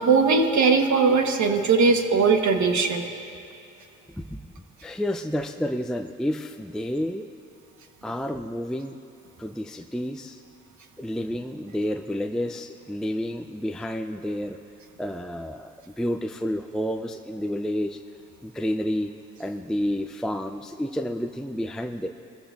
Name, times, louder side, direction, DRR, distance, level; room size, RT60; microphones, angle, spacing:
voice 1, 0.0-3.1, right 4 dB, 55° right, 5 dB, 1.4 m, -20 dB
voice 2, 4.8-7.3 8.0-9.0 9.4-10.4 11.0-14.6 15.0-18.0 18.4-19.1 19.4-22.1, equal, ahead, 5 dB, 0.5 m, -30 dB
21.5 x 14.5 x 2.6 m, 2.6 s
supercardioid pair, 55°, 35 cm